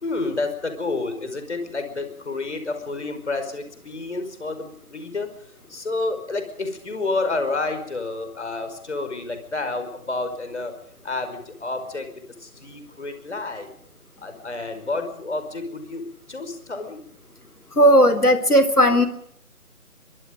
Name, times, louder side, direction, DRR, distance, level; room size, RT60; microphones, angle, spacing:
voice 1, 0.0-5.3 5.7-10.8 11.0-12.1 12.4-13.7 14.2-17.0, left 3 dB, 50° left, 8 dB, 5.4 m, -29 dB
voice 2, 17.8-19.1, equal, 90° left, 11 dB, 3.7 m, -15 dB
23.5 x 23.5 x 5.3 m, 0.71 s
figure-of-eight pair, 155°, 44 cm